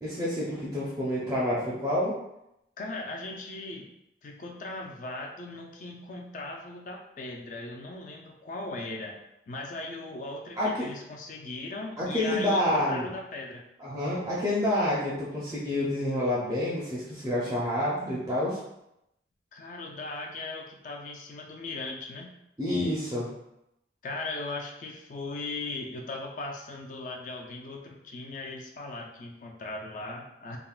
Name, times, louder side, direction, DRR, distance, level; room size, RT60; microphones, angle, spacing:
voice 1, 0.0-2.1 10.6-10.9 12.0-13.1 13.8-18.6 22.6-23.3, left 1 dB, 20° right, -7 dB, 0.4 m, -28 dB
voice 2, 2.8-3.9 4.2-9.2 9.5-13.6 19.5-22.4 24.0-30.6, left 2 dB, 45° left, 1 dB, 0.4 m, -38 dB
3.5 x 2.1 x 2.3 m, 0.85 s
head